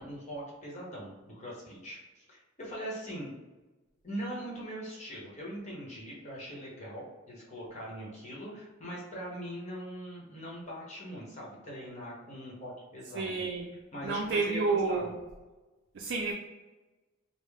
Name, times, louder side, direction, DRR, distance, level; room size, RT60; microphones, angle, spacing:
voice 1, 0.0-3.3 4.0-15.1, equal, 35° left, -4 dB, 1.0 m, -41 dB
voice 2, 13.1-13.7 14.0-15.2 15.9-16.3, right 4 dB, 60° right, 1 dB, 0.3 m, -30 dB
3.6 x 2.0 x 3.4 m, 1.2 s
head